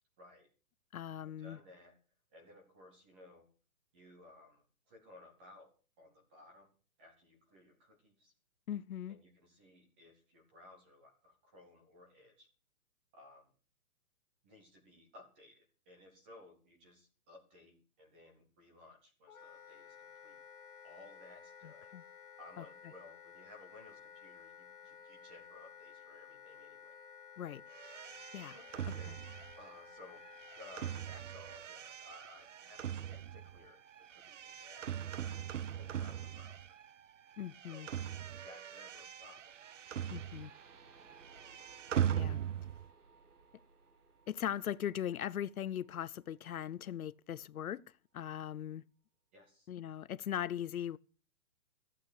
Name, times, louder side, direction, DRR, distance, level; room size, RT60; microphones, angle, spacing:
voice 1, 0.2-0.5 1.4-1.9 2.3-3.5 3.9-5.7 6.0-6.7 7.0-8.3 9.1-12.5 13.1-13.5 14.4-20.4 20.8-21.9 22.4-27.0 28.5-30.2 30.6-35.4 35.7-36.7 37.7-37.9 38.4-39.5 49.3-49.7, left 2 dB, 5° right, 0.9 m, -58 dB
voice 2, 0.9-1.6 8.7-9.2 21.6-22.0 22.6-22.7 27.4-27.6 28.3-28.6 28.9-29.1 37.4-37.9 40.1-40.5 42.1-42.4 44.3-47.8 48.1-48.8 49.7-51.0, left 10 dB, 70° left, 0.6 m, -39 dB
Wind instrument woodwind instrument, 19.3-31.1, left 7 dB, 10° left, 1.8 m, -55 dB
sound 1, 27.7-37.0 37.3-40.7 41.0-42.9, right 10 dB, 55° right, 0.6 m, -40 dB
sound 2, 39.3-47.3, right 4 dB, 85° right, 2.3 m, -63 dB
14.5 x 8.5 x 6.6 m
hypercardioid pair, 180°, 44 cm